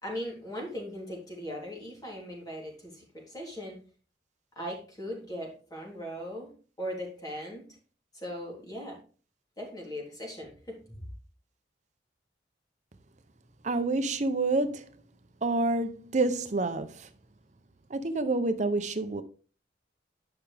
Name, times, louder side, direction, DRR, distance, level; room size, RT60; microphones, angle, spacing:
voice 1, 0.0-3.8 4.5-6.5 6.8-7.6 8.1-9.0 9.6-11.0, equal, 20° left, 3.2 m, -39 dB
voice 2, 13.6-14.9 15.4-17.1 17.9-19.2, right 2 dB, 40° right, 0.7 m, -28 dB
10.5 x 5.7 x 3.4 m
head